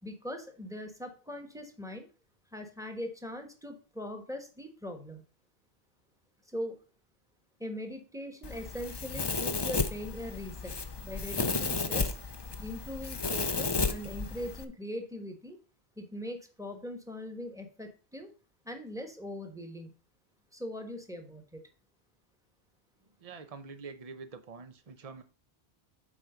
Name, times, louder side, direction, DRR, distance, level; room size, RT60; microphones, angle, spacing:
voice 1, 0.0-2.1 2.5-5.2 6.5-6.8 7.6-10.7 11.0-12.1 12.6-15.6 16.0-18.3 18.6-19.9 20.5-21.7, left 1 dB, 5° right, 1.3 m, -41 dB
Domestic sounds home sounds, 8.4-14.6, left 4 dB, 30° left, 0.6 m, -33 dB
voice 2, 23.2-25.2, right 4 dB, 35° right, 0.8 m, -46 dB
7.3 x 4.8 x 5.0 m
omnidirectional pair, 1.1 m